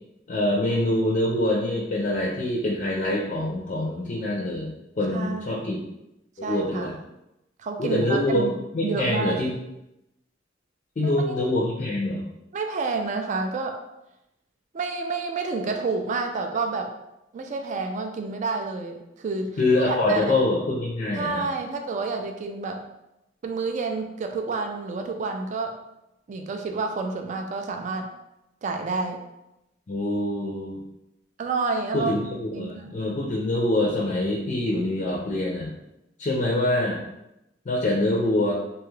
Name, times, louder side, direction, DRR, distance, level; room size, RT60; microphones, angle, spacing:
voice 1, 0.3-5.8 6.4-7.0 7.8-9.5 11.0-12.2 19.6-21.5 29.9-30.8 31.9-32.2 32.6-35.7 36.2-37.0 37.7-38.5, left 1 dB, 40° left, -3 dB, 0.4 m, -25 dB
voice 2, 5.1-5.8 6.4-6.9 7.6-8.5 8.8-9.4 11.0-11.4 12.5-13.8 14.7-16.9 17.3-19.5 19.8-20.4 21.1-22.8 23.4-25.8 26.3-28.1 28.6-29.2 31.4-32.1 32.5-33.0, right 4 dB, 40° right, 4 dB, 0.3 m, -29 dB
2.8 x 2.3 x 3.1 m, 0.89 s
head